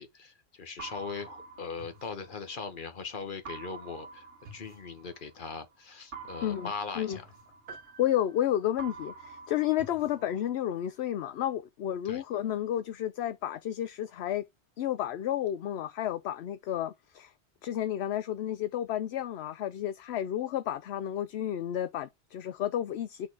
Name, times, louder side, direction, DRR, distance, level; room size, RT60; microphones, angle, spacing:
voice 1, 0.0-7.2 12.0-12.2, left 5 dB, 45° left, 1.3 m, -40 dB
sound 1, 0.8-2.9 3.4-5.5 6.1-8.4 8.8-10.9, right 4 dB, 80° right, 1.6 m, -47 dB
sound 2, 7.7-9.5, right 4 dB, 65° right, 1.3 m, -51 dB
voice 2, 8.0-14.4 14.8-17.3 17.6-23.3, left 11 dB, 70° left, 0.8 m, -31 dB
6.5 x 3.7 x 4.6 m
omnidirectional pair, 1.2 m